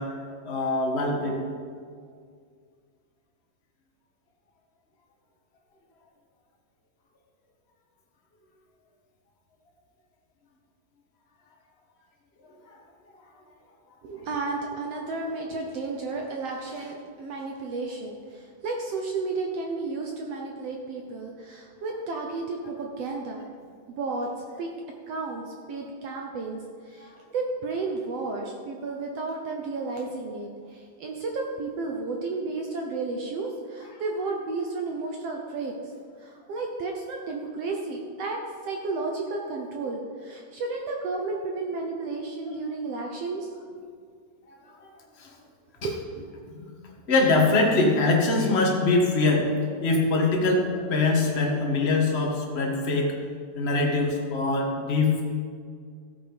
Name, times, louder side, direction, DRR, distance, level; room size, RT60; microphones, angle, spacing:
voice 1, 0.0-1.4 12.4-12.5 27.0-27.1 44.5-44.9 45.2-45.3 46.5-46.7 47.1-49.5 49.8-53.1 53.6-55.2, left 3 dB, 40° left, -1 dB, 0.9 m, -23 dB
voice 2, 14.0-23.5 24.0-24.3 24.6-24.7 25.1-35.7 36.2-43.5 45.8-46.3, right 3 dB, 70° right, 1 dB, 1.5 m, -32 dB
15.0 x 8.3 x 5.2 m, 2.1 s
omnidirectional pair, 4.0 m